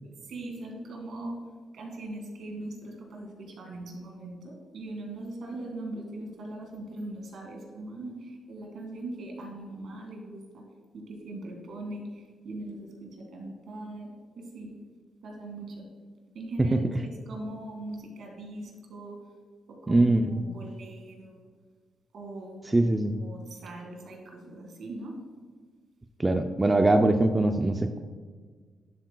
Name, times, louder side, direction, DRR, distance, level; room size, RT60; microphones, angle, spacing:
voice 1, 0.0-1.4 1.7-10.6 10.9-14.7 15.2-15.9 16.3-16.8 17.0-19.2 19.8-21.5 22.1-22.9 23.2-25.1, right 2 dB, 65° right, 1 dB, 2.0 m, -40 dB
voice 2, 19.9-20.4 22.7-23.2 26.2-28.0, right 2 dB, 15° right, 5 dB, 0.4 m, -22 dB
11.0 x 7.7 x 2.3 m, 1.5 s
cardioid pair, 130°, 0 cm